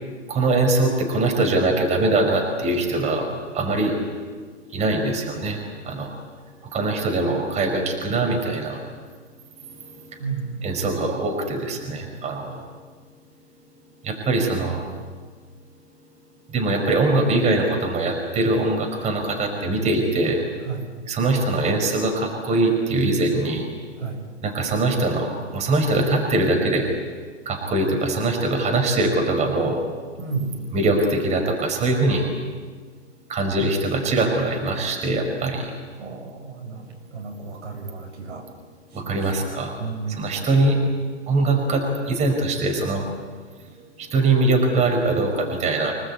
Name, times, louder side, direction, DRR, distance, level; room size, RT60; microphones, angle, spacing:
voice 1, 0.3-3.3 3.5-3.9 4.7-6.1 6.7-8.8 10.6-12.6 14.0-14.8 16.5-20.4 21.1-23.7 24.4-26.9 27.4-29.8 30.7-32.2 33.3-35.7 39.1-39.7 40.1-40.8 41.3-43.0 44.0-45.9, right 2 dB, 20° right, 2 dB, 4.9 m, -22 dB
voice 2, 10.2-10.9 20.7-20.9 24.0-24.2 30.2-30.6 36.0-38.5 39.0-39.2 39.8-40.5, right 4 dB, 90° right, 1 dB, 7.9 m, -32 dB
26.0 x 19.5 x 8.6 m, 1.5 s
hypercardioid pair, 140°, 34 cm